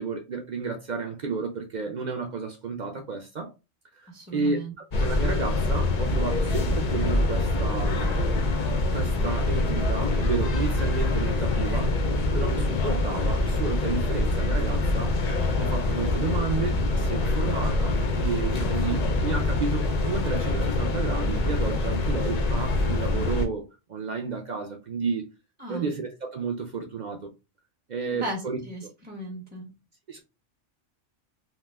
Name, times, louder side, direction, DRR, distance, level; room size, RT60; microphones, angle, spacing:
voice 1, 0.0-3.5 3.9-4.7 5.0-8.2 8.9-12.0 12.3-15.2 15.6-23.6 23.9-25.3 25.7-27.3 27.9-28.6 30.1-30.2, right 4 dB, 60° right, 0.5 m, -32 dB
voice 2, 4.1-4.7 25.6-25.9 28.1-29.7, right 1 dB, 10° right, 0.6 m, -36 dB
sound 1, 4.9-23.5, left 2 dB, 55° left, 0.4 m, -25 dB
2.9 x 2.1 x 3.3 m
omnidirectional pair, 1.2 m